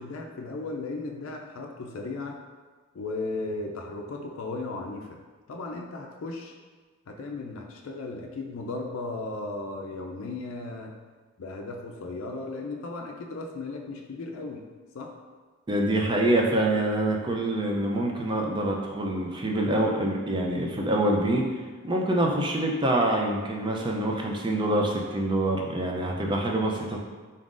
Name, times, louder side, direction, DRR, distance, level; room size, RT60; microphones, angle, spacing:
voice 1, 0.0-2.4 2.9-5.2 5.5-6.5 7.1-10.9 11.4-14.6 14.9-15.1, left 3 dB, 70° left, 1 dB, 0.4 m, -36 dB
voice 2, 15.7-21.5 21.8-27.0, right 1 dB, 20° right, 0 dB, 0.4 m, -25 dB
4.0 x 3.7 x 2.5 m, 1.4 s
head